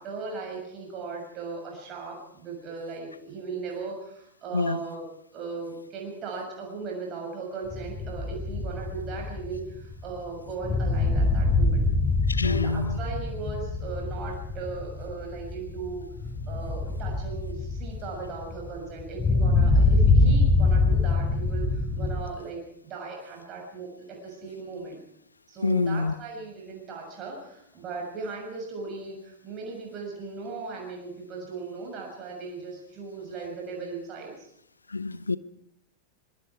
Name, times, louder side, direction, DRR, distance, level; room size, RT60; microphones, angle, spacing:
voice 1, 0.0-11.9 12.3-16.1 16.5-25.0 25.5-34.5, right 4 dB, 35° right, 1 dB, 6.6 m, -38 dB
sound 1, 7.7-22.2, left 3 dB, 20° left, 6.0 m, -25 dB
voice 2, 12.3-13.0 20.2-20.3 25.6-26.1 34.9-35.4, left 3 dB, 80° left, 17 dB, 0.8 m, -26 dB
25.0 x 23.5 x 4.8 m, 0.70 s
figure-of-eight pair, 90°, 0 cm